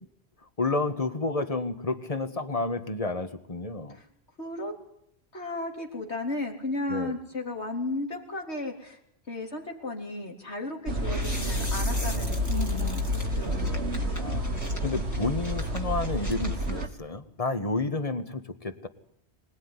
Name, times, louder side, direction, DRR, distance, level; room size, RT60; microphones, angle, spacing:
voice 1, 0.6-4.0 6.9-7.2 14.2-14.4 14.8-18.9, left 3 dB, 35° left, 9 dB, 1.8 m, -30 dB
voice 2, 4.4-4.7 5.3-9.0 9.3-13.0 13.3-13.8, left 2 dB, 80° left, 2 dB, 4.1 m, -34 dB
sound 1, 10.9-16.9, equal, 80° right, 2.3 m, -29 dB
sound 2, 11.0-16.8, left 1 dB, 15° left, 2.2 m, -42 dB
25.5 x 19.5 x 9.9 m, 0.73 s
omnidirectional pair, 1.1 m